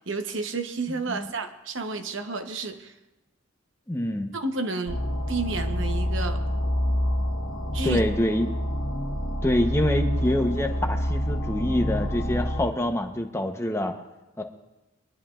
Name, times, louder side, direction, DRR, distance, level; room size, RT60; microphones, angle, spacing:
voice 1, 0.1-2.9 4.3-5.0 5.3-6.4 7.7-8.0, right 3 dB, 70° right, 6 dB, 0.9 m, -30 dB
voice 2, 3.9-4.3 7.8-8.6 9.4-13.9 14.4-14.5, left 1 dB, 15° left, 4 dB, 0.9 m, -26 dB
sound 1, 4.9-12.7, equal, 90° left, 1.5 m, -27 dB
25.0 x 11.0 x 2.5 m, 1.0 s
head